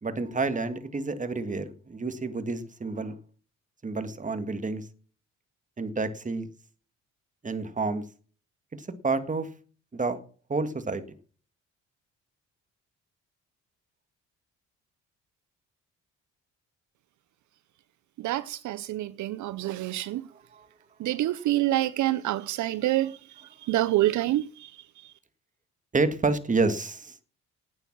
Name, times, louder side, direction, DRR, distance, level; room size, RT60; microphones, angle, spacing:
voice 1, 0.0-3.2 3.8-4.9 5.8-6.5 7.4-8.0 8.8-9.5 9.9-10.2 10.5-11.0 20.5-20.7 23.0-23.1 23.8-23.9 25.9-27.1, right 3 dB, 25° right, 1.8 m, -29 dB
voice 2, 18.2-20.3 21.0-24.7, right 15 dB, 75° right, 0.6 m, -27 dB
11.5 x 9.2 x 6.0 m
cardioid pair, 90°, 30 cm